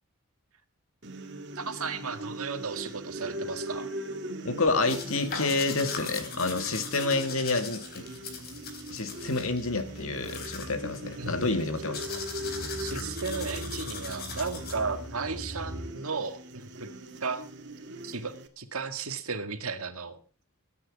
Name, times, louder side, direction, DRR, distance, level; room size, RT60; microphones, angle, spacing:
sound 1, 1.0-18.5, right 1 dB, 50° right, 2.2 m, -41 dB
voice 1, 1.6-3.9 11.2-11.3 12.8-16.9 17.2-17.5 18.0-20.2, right 4 dB, 75° right, 2.0 m, -34 dB
voice 2, 4.4-8.0 8.9-12.2, left 3 dB, 70° left, 2.1 m, -29 dB
sound 2, 4.9-15.1, left 4 dB, 45° left, 4.1 m, -41 dB
sound 3, 8.3-15.9, equal, ahead, 3.6 m, -44 dB
22.5 x 9.7 x 4.8 m
head